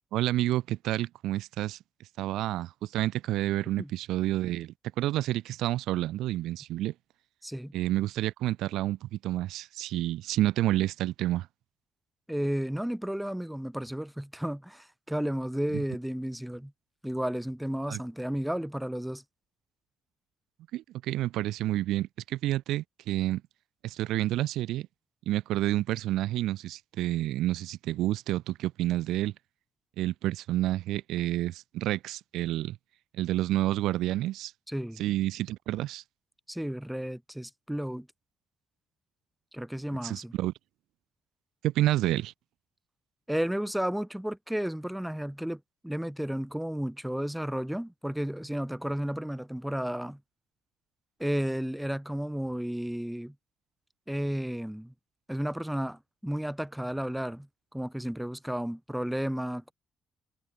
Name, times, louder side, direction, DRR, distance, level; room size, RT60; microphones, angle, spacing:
voice 1, 0.1-1.8 2.2-6.9 7.7-11.5 15.7-15.8 17.9-18.0 20.7-23.4 23.8-24.9 25.3-29.3 30.0-32.8 33.1-34.5 35.0-36.0 40.0-40.5 41.6-42.3, right 15 dB, 90° right, 7.1 m, -29 dB
voice 2, 7.4-7.7 12.3-16.7 17.0-19.2 34.7-35.0 36.5-38.1 39.5-40.3 43.3-50.2 51.2-53.3 54.1-54.9 55.3-57.5 57.7-59.7, equal, 5° right, 5.0 m, -33 dB
cardioid pair, 90°, 0 cm